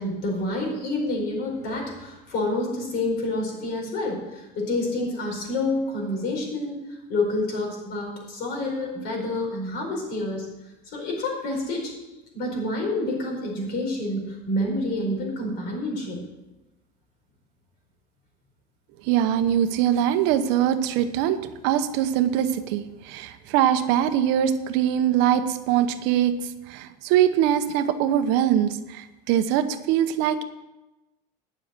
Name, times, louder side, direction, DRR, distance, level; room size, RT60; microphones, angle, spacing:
voice 1, 0.0-10.5 10.9-11.9 12.3-16.2, left 2 dB, 55° left, 0 dB, 4.7 m, -28 dB
voice 2, 19.0-26.4 26.7-30.4, right 10 dB, 65° right, 10 dB, 0.9 m, -22 dB
9.6 x 7.3 x 7.8 m, 1.0 s
supercardioid pair, 130°, 20 cm